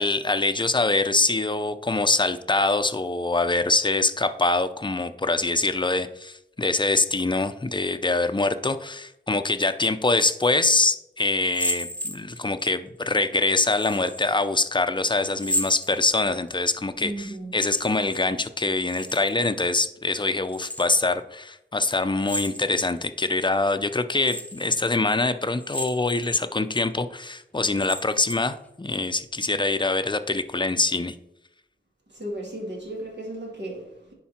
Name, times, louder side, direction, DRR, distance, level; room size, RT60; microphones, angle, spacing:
voice 1, 0.0-31.2, left 3 dB, 25° left, 0.6 m, -24 dB
sound 1, 11.4-12.6 13.6-14.2 15.3-16.5 17.5-18.2 18.5-19.5 20.5-21.1 22.2-23.0 23.5-23.6 24.2-24.7 25.5-26.3 26.8-26.9 27.6-28.6, equal, 5° left, 1.0 m, -33 dB
voice 2, 17.0-17.6 32.1-34.1, right 1 dB, 70° right, 2.7 m, -35 dB
10.0 x 4.7 x 4.3 m
wide cardioid pair, 45°, 19 cm